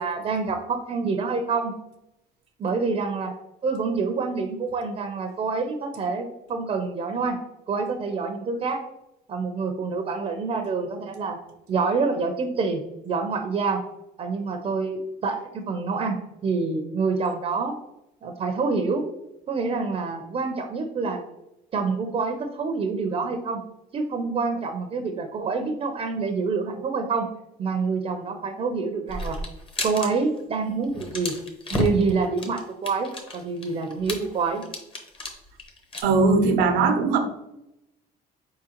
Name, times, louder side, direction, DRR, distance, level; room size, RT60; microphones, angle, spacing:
voice 1, 0.0-1.7 2.6-3.3 3.6-7.4 7.7-8.8 9.3-11.4 11.7-13.8 14.2-16.2 16.4-17.7 18.2-19.0 19.5-21.2 21.7-23.6 23.9-27.3 27.6-29.4 29.8-31.3 31.7-34.6, right 4 dB, 40° right, 4 dB, 0.5 m, -27 dB
sound 1, 29.1-30.1 30.4-30.5 30.8-36.0, left 1 dB, 30° left, 0.9 m, -32 dB
voice 2, 36.0-37.2, right 4 dB, 90° right, 5 dB, 0.7 m, -19 dB
4.4 x 3.7 x 2.9 m, 0.88 s
cardioid pair, 110°, 17 cm